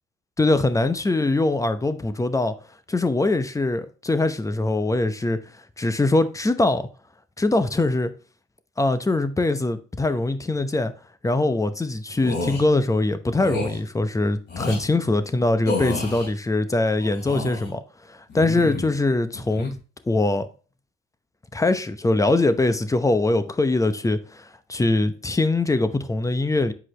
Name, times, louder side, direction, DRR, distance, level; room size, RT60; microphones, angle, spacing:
voice 1, 0.4-2.5 2.9-5.4 5.8-6.9 7.4-8.1 8.8-10.9 11.2-17.8 18.1-19.7 20.1-20.5 21.5-26.7, left 2 dB, 15° left, 0.8 m, -22 dB
sound 1, 12.2-12.6 13.4-13.8 14.5-14.8 15.6-16.3 17.0-17.7 18.3-19.0 19.3-19.7, left 3 dB, 60° left, 3.1 m, -30 dB
7.9 x 4.8 x 3.3 m
cardioid pair, 90°, 20 cm